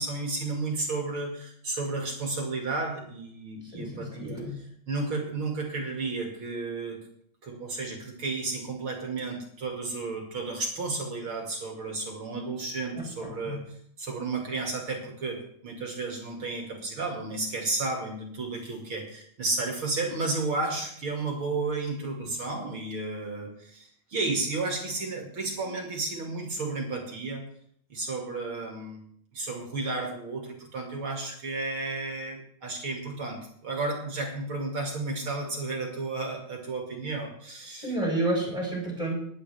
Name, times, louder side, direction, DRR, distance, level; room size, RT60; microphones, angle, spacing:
voice 1, 0.0-7.0 7.4-13.6 14.0-27.4 27.9-29.0 29.3-37.9, right 3 dB, 40° right, 1 dB, 2.4 m, -32 dB
voice 2, 3.7-4.5 12.9-13.6 37.7-39.2, right 1 dB, 10° right, -3 dB, 4.2 m, -30 dB
20.5 x 10.0 x 3.4 m, 0.66 s
omnidirectional pair, 4.4 m